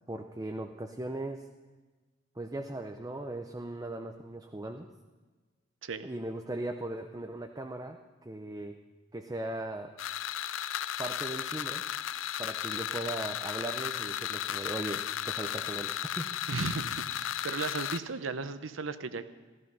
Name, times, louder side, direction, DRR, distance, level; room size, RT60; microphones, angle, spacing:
voice 1, 0.1-1.5 2.4-4.9 6.0-8.8 9.1-9.9 11.0-11.8 12.4-16.3, right 1 dB, 20° right, 4 dB, 0.6 m, -38 dB
sound 1, 10.0-18.0, left 10 dB, 80° left, 0.5 m, -35 dB
voice 2, 16.5-19.2, right 4 dB, 75° right, 12 dB, 0.8 m, -35 dB
14.5 x 14.0 x 5.5 m, 1.3 s
head